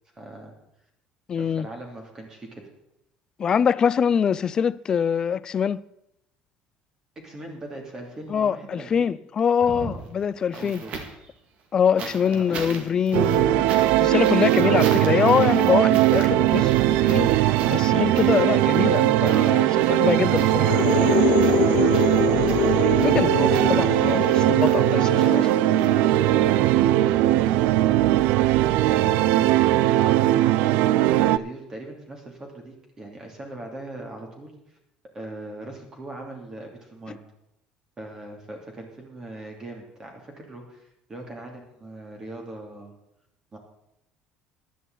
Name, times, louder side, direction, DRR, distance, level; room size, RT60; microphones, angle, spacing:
voice 1, 0.1-0.5 1.4-2.6 7.2-9.2 9.7-10.0 10.5-11.1 12.0-13.0 19.5-21.9 28.9-34.8 35.1-37.2 38.0-42.9 43.5-43.6, right 2 dB, 20° right, 2.7 m, -40 dB
voice 2, 1.3-1.7 3.4-5.8 8.3-10.8 11.7-17.3 17.7-20.7 22.8-25.5, left 7 dB, 30° left, 0.4 m, -24 dB
sound 1, 9.5-11.3 12.0-26.5 27.6-27.7, right 5 dB, 50° right, 1.9 m, -39 dB
sound 2, 13.1-31.4, right 14 dB, 80° right, 0.4 m, -20 dB
sound 3, 20.5-28.1, left 13 dB, 75° left, 0.7 m, -27 dB
15.0 x 11.0 x 3.9 m
cardioid pair, 155°, 3 cm